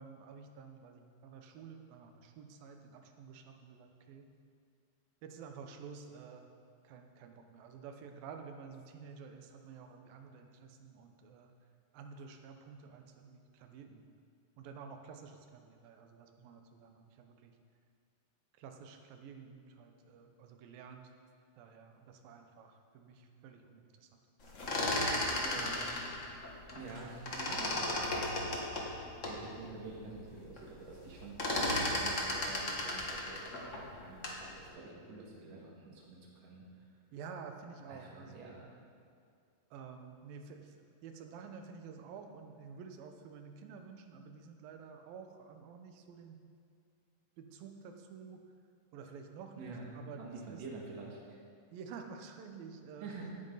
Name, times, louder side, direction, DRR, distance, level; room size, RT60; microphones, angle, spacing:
voice 1, 0.0-4.3 5.2-6.5 6.8-11.5 11.9-14.0 14.6-17.5 18.6-21.0 21.6-24.1 37.1-38.7 39.7-40.7 41.0-46.4 47.4-48.4 48.9-50.6 51.7-53.1, right 5 dB, 85° right, 5 dB, 2.7 m, -50 dB
sound 1, 24.4-27.0 27.2-29.4 29.9-30.0 30.2-30.7 30.9-34.5, left 1 dB, 80° left, 0.6 m, -34 dB
voice 2, 25.3-26.1 26.7-31.4 31.7-36.6 37.9-38.6 49.6-51.4 53.0-53.3, right 3 dB, 50° right, -3 dB, 2.9 m, -48 dB
16.5 x 9.2 x 4.0 m, 2.2 s
omnidirectional pair, 4.0 m